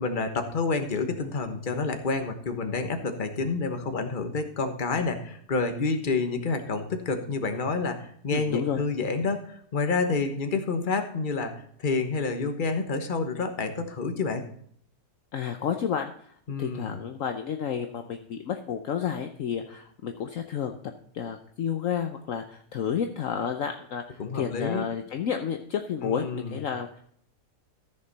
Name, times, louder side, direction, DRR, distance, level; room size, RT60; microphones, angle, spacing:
voice 1, 0.0-14.5 16.5-17.0 24.2-24.8 26.0-26.6, left 4 dB, 35° left, 7 dB, 1.3 m, -29 dB
voice 2, 8.3-8.8 15.3-16.1 16.6-20.8 21.1-27.0, left 8 dB, 60° left, 6 dB, 1.1 m, -31 dB
14.0 x 6.7 x 4.1 m, 0.64 s
omnidirectional pair, 1.7 m